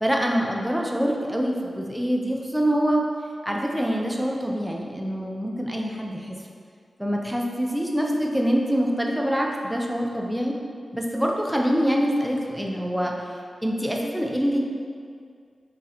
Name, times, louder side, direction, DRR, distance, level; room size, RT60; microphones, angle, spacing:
voice 1, 0.0-3.0 3.4-6.3 7.0-10.5 10.9-13.3 13.6-14.6, equal, 5° right, -1 dB, 0.4 m, -25 dB
4.0 x 2.8 x 3.7 m, 2.2 s
wide cardioid pair, 170°, 0 cm